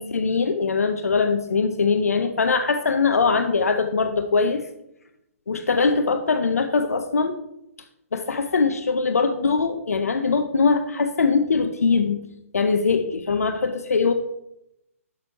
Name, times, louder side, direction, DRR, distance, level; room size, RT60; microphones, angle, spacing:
voice 1, 0.0-4.6 5.5-7.4 8.1-12.2 12.5-14.1, left 4 dB, 80° left, 8 dB, 0.7 m, -22 dB
6.8 x 6.2 x 4.1 m, 0.82 s
figure-of-eight pair, 135°, 8 cm